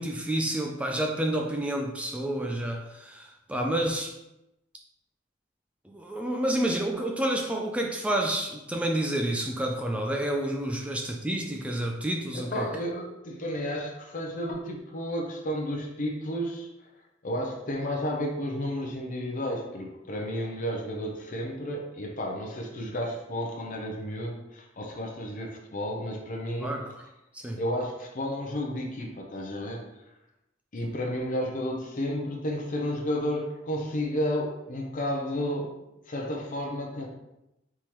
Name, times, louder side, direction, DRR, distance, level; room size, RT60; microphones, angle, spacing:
voice 1, 0.0-4.1 5.9-12.7 26.6-27.0 27.3-27.6, right 1 dB, 5° right, 1 dB, 0.3 m, -29 dB
voice 2, 12.3-16.7 17.2-26.7 27.6-29.9 30.7-35.7 36.1-37.1, equal, 45° left, 0 dB, 0.7 m, -32 dB
4.5 x 3.6 x 3.0 m, 0.90 s
head